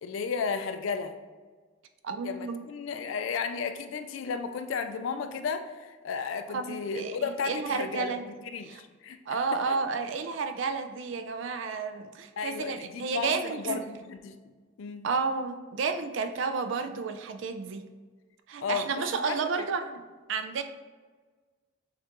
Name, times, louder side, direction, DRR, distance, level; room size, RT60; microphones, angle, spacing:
voice 1, 0.0-1.1 2.2-9.8 12.4-14.4 14.8-15.1 18.6-18.9 19.2-19.4, left 5 dB, 70° left, 8 dB, 0.4 m, -34 dB
voice 2, 2.0-2.6 6.5-8.2 8.6-8.8 9.3-13.8 15.0-17.8 18.5-20.0 20.3-20.6, right 4 dB, 65° right, 8 dB, 0.4 m, -31 dB
6.5 x 2.5 x 2.9 m, 1.4 s
head